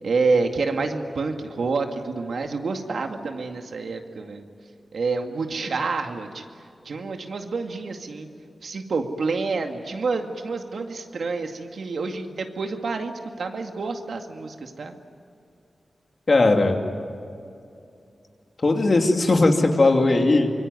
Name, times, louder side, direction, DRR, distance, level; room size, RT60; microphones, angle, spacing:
voice 1, 0.0-4.5 4.9-6.4 6.9-8.3 8.6-14.9, right 4 dB, 80° right, 4 dB, 2.2 m, -28 dB
voice 2, 16.3-16.8 18.6-20.5, left 2 dB, 45° left, 3 dB, 2.8 m, -18 dB
25.0 x 23.0 x 9.5 m, 2.5 s
wide cardioid pair, 110°, 0 cm